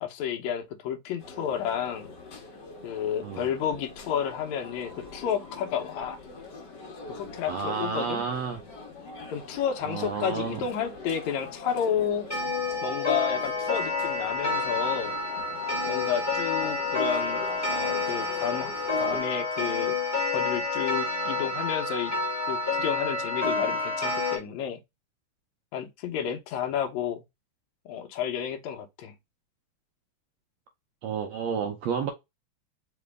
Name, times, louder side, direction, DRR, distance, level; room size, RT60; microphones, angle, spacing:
voice 1, 0.0-2.1 2.8-6.2 7.1-8.2 9.3-12.3 12.8-15.2 15.9-20.0 20.3-22.1 22.5-24.8 25.7-27.2 27.9-29.1, left 8 dB, 75° left, 2.0 m, -31 dB
sound 1, 1.2-19.2, left 3 dB, 50° left, 1.4 m, -44 dB
voice 2, 7.5-8.6 9.8-10.6 31.0-32.1, right 6 dB, 70° right, 1.8 m, -31 dB
Clock, 12.3-24.4, left 3 dB, 10° left, 1.1 m, -29 dB
5.1 x 3.1 x 3.4 m
omnidirectional pair, 3.6 m